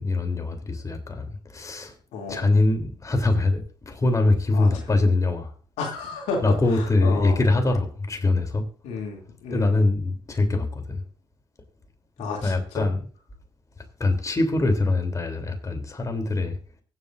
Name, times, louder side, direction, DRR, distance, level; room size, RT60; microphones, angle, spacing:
voice 1, 0.0-1.9 2.3-3.6 3.9-5.5 6.4-8.6 9.5-11.0 12.2-13.0 14.0-16.6, left 2 dB, 30° left, 3.3 m, -23 dB
voice 2, 2.1-2.5 4.5-4.7 5.8-6.5 7.0-7.4 8.8-9.8 12.2-12.9, left 4 dB, 80° left, 2.8 m, -31 dB
24.0 x 8.1 x 2.6 m
supercardioid pair, 60°, 11 cm